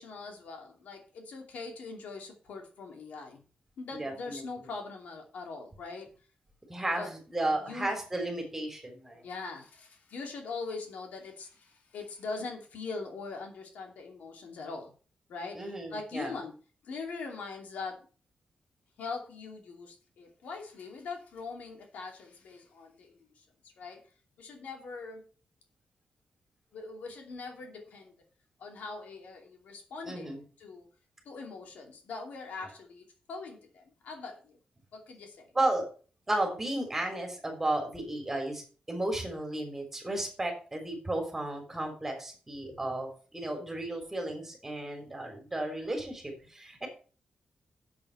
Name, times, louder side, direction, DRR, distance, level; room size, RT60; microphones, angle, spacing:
voice 1, 0.0-3.4 3.8-6.1 7.0-7.1 7.6-8.0 9.1-14.9 15.3-15.6 15.9-16.6 16.8-18.1 19.0-23.4 23.8-24.0 24.4-25.3 26.7-28.1 28.6-30.9 31.2-34.6 34.9-35.5, left 4 dB, 85° left, 3 dB, 2.6 m, -42 dB
voice 2, 3.9-4.7 6.7-9.2 15.5-16.4 30.0-30.4 35.5-35.9 36.3-46.9, right 1 dB, 10° right, 3 dB, 3.5 m, -34 dB
7.7 x 7.0 x 7.0 m, 0.38 s
wide cardioid pair, 160°, 3 cm